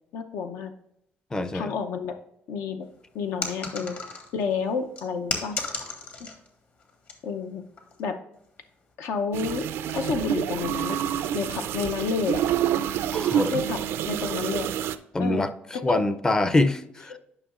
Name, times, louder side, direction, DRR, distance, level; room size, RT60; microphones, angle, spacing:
voice 1, 0.1-0.7 1.5-2.2 2.5-2.9 3.1-3.9 4.3-5.6 6.2-6.3 7.2-7.6 8.0-8.2 9.0-11.0 11.3-12.4 13.5-14.7 15.2-15.5 15.7-16.0 17.1-17.2, left 5 dB, 75° left, 0.6 m, -30 dB
voice 2, 1.3-1.7 13.1-13.5 15.1-17.2, left 2 dB, 15° left, 0.5 m, -25 dB
sound 1, 3.4-4.4 5.0-6.5 6.8-7.2 7.8-8.0, left 3 dB, 50° left, 1.4 m, -33 dB
sound 2, 9.3-15.0, right 10 dB, 80° right, 0.4 m, -27 dB
9.8 x 5.5 x 2.5 m
cardioid pair, 105°, 4 cm